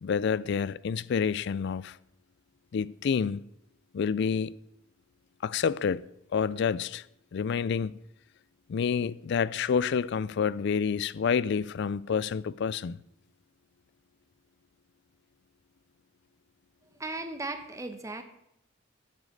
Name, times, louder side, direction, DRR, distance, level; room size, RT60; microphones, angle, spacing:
voice 1, 0.0-2.0 2.7-3.4 3.9-4.5 5.4-6.0 6.3-7.0 7.3-7.9 8.7-13.0, left 6 dB, 60° left, 0.4 m, -28 dB
voice 2, 16.9-18.2, right 2 dB, 15° right, 1.0 m, -36 dB
9.1 x 8.3 x 6.4 m
head